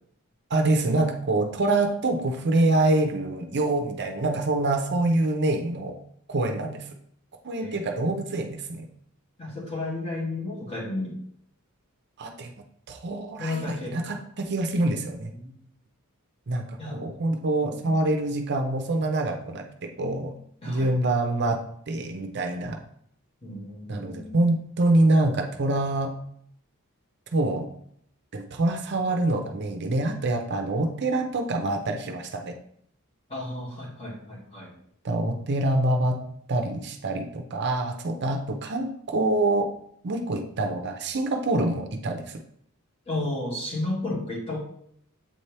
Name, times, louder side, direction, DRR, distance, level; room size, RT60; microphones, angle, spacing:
voice 1, 0.5-5.9 6.3-6.9 7.4-8.8 12.2-12.5 12.9-15.3 16.5-20.3 20.7-21.6 21.9-22.8 23.9-26.1 27.3-27.7 28.3-32.6 35.0-36.2 36.5-39.7 40.0-42.2, right 2 dB, 50° right, 4 dB, 0.6 m, -25 dB
voice 2, 7.6-7.9 9.4-11.2 13.4-14.0 15.4-15.5 16.8-17.1 17.6-18.0 20.6-21.0 23.4-24.5 33.3-34.7 43.1-44.6, left 2 dB, 25° left, -4 dB, 2.0 m, -33 dB
7.7 x 4.3 x 3.3 m, 0.68 s
head